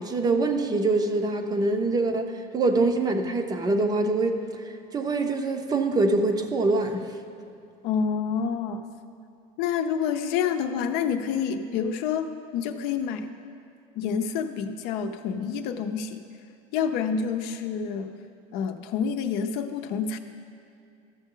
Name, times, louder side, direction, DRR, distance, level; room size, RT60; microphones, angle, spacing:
voice 1, 0.0-4.4 4.9-7.1, right 2 dB, 25° right, 6 dB, 0.6 m, -24 dB
voice 2, 7.8-8.8 9.6-13.3 14.0-16.2 16.7-18.1 18.5-20.2, left 7 dB, 70° left, 7 dB, 0.6 m, -28 dB
14.0 x 6.2 x 3.8 m, 2.4 s
cardioid pair, 135°, 17 cm